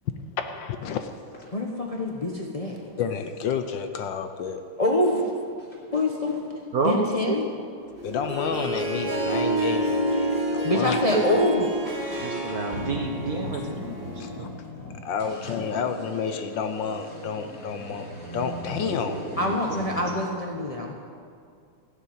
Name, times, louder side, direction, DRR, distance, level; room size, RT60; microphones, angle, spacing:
voice 1, 0.4-1.1 3.0-4.6 5.0-5.1 8.0-11.0 12.1-12.2 13.5-13.6 14.2-14.5 15.0-18.1 18.3-19.2, left 6 dB, 65° left, 7 dB, 1.3 m, -30 dB
sound 1, 0.8-0.9 1.3-4.0 4.6-4.7 5.0-5.2 5.6-9.3 9.5-9.6 9.8-9.9 10.5-10.7 11.0-20.1, left 1 dB, 30° left, 3.5 m, -39 dB
voice 2, 1.5-2.9 4.8-5.3 5.9-6.5 6.8-7.4 10.6-11.7 19.4-20.9, left 1 dB, 45° left, -1 dB, 0.4 m, -25 dB
voice 3, 6.7-7.4 10.8-10.9 12.2-13.6 14.0-14.1 14.4-14.5, right 4 dB, 55° right, 3 dB, 1.0 m, -28 dB
Harp, 8.0-14.5, right 1 dB, 25° right, 2.4 m, -29 dB
15.5 x 7.3 x 9.2 m, 2.3 s
omnidirectional pair, 2.4 m